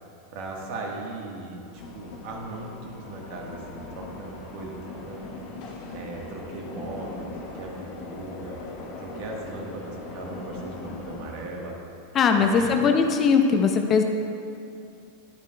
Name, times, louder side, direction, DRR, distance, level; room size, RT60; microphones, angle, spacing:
voice 1, 0.3-5.3 5.9-11.8 12.4-12.7, right 2 dB, 55° right, -1 dB, 1.4 m, -38 dB
sound 1, 1.7-11.5, left 3 dB, 50° left, 1.2 m, -40 dB
voice 2, 12.1-14.0, left 5 dB, 35° left, 5 dB, 0.6 m, -20 dB
9.9 x 8.9 x 2.3 m, 2.6 s
hypercardioid pair, 95°, 0 cm